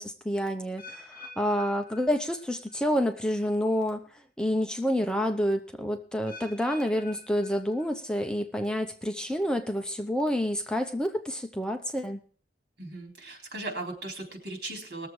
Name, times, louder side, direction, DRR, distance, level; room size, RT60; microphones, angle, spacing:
voice 1, 0.0-4.1 4.4-12.2, equal, 5° left, 5 dB, 0.7 m, -28 dB
sound 1, 0.8-2.8 3.1-3.5 4.1-4.2 6.3-8.2 8.5-9.0 9.6-9.7, left 3 dB, 30° left, 4.6 m, -48 dB
voice 2, 12.8-15.1, right 2 dB, 70° right, 2 dB, 3.9 m, -37 dB
19.5 x 7.3 x 4.7 m, 0.43 s
head